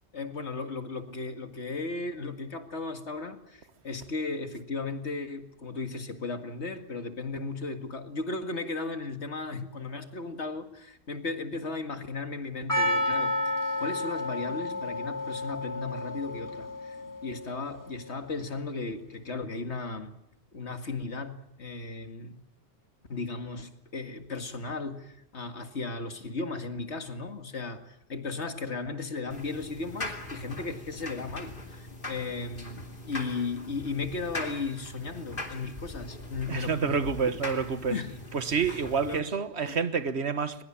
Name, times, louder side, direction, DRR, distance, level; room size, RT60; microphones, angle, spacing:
voice 1, 0.1-20.1 20.5-22.4 23.1-37.1 37.9-38.1 38.6-39.2 39.6-39.8, left 3 dB, 80° left, 2.3 m, -36 dB
Percussion, 12.7-17.6, left 1 dB, 15° left, 2.0 m, -31 dB
sound 1, 29.3-39.2, left 2 dB, 50° left, 3.1 m, -41 dB
voice 2, 36.5-38.0 38.3-40.6, right 5 dB, 75° right, 1.6 m, -28 dB
22.0 x 21.0 x 8.8 m
omnidirectional pair, 1.1 m